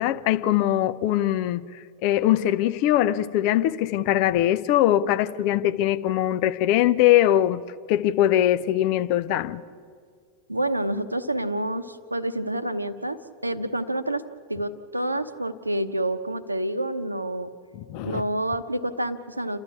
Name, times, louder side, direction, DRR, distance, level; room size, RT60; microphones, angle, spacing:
voice 1, 0.0-1.6 2.0-7.6 7.9-9.6 17.7-18.2, left 13 dB, 45° left, 0.7 m, -22 dB
voice 2, 10.5-14.2 14.5-17.5 18.0-19.6, right 1 dB, 85° right, 0.9 m, -28 dB
29.5 x 12.5 x 8.5 m
figure-of-eight pair, 90°, 0 cm